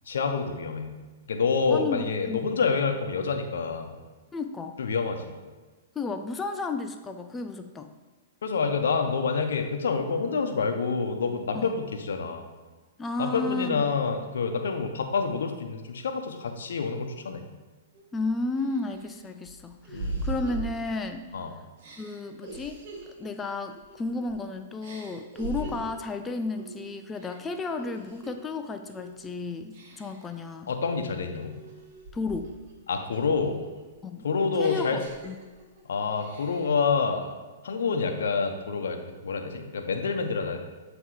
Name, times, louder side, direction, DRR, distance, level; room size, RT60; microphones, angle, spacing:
voice 1, 0.1-0.9 1.3-3.9 4.8-5.3 8.4-12.4 13.2-17.4 19.9-20.3 21.3-21.5 25.6-25.7 30.7-31.6 32.9-33.6 34.2-35.0 35.9-37.3 37.6-40.6, left 5 dB, 75° left, 5 dB, 0.7 m, -27 dB
voice 2, 1.7-2.4 4.3-4.8 6.0-7.9 11.5-11.7 13.0-13.9 18.1-21.3 22.0-22.8 23.2-30.7 32.1-32.5 34.0-34.2 34.6-35.4, left 3 dB, 15° left, 7 dB, 0.4 m, -33 dB
sound 1, 17.9-18.0 18.6-21.3 21.8-24.4 24.8-26.0 26.5-26.8 27.1-28.4 28.9-29.2 29.7-30.3 30.8-32.7 33.1-35.8 36.1-36.8, right 2 dB, 55° right, 1.3 m, -41 dB
7.7 x 2.9 x 4.8 m, 1.3 s
hypercardioid pair, 120°, 0 cm